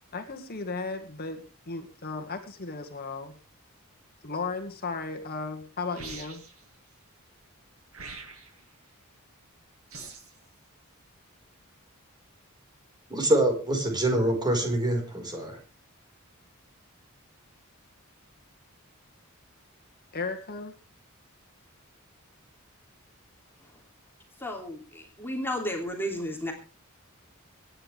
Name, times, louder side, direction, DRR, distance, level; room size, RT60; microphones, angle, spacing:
voice 1, 0.1-3.4 4.2-6.4 20.1-20.7, left 4 dB, 45° left, 5 dB, 1.9 m, -35 dB
sound 1, 5.9-6.6 7.9-8.6 9.9-10.4, right 4 dB, 75° right, 6.7 m, -43 dB
voice 2, 13.1-15.6, right 1 dB, 20° right, 3 dB, 5.1 m, -25 dB
voice 3, 24.4-26.5, equal, 10° left, 1 dB, 3.0 m, -33 dB
25.0 x 10.0 x 3.5 m, 0.32 s
head